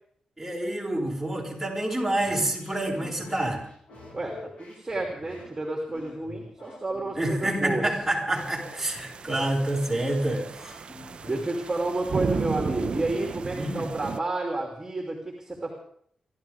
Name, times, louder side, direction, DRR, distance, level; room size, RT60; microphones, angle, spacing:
voice 1, 0.4-3.6 7.1-10.8 13.6-13.9, right 1 dB, 5° right, -3 dB, 5.7 m, -28 dB
sound 1, 2.2-11.9, left 2 dB, 65° left, 7.3 m, -47 dB
voice 2, 4.1-7.8 11.3-15.7, right 2 dB, 20° right, 0 dB, 3.1 m, -30 dB
sound 2, 8.4-14.2, right 6 dB, 55° right, 0.6 m, -35 dB
28.5 x 13.0 x 3.6 m, 0.63 s
wide cardioid pair, 100°, 2 cm